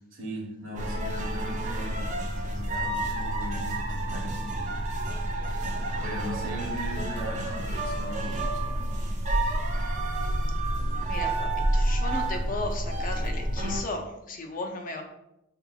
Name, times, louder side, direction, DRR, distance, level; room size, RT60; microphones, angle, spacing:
voice 1, 0.1-2.0 2.4-4.8 5.9-8.9, equal, 70° right, 0 dB, 1.1 m, -39 dB
sound 1, 0.8-13.8, right 1 dB, 35° right, 0.5 m, -29 dB
voice 2, 11.1-15.0, left 2 dB, 45° left, 4 dB, 0.5 m, -35 dB
5.2 x 2.8 x 2.3 m, 0.86 s
head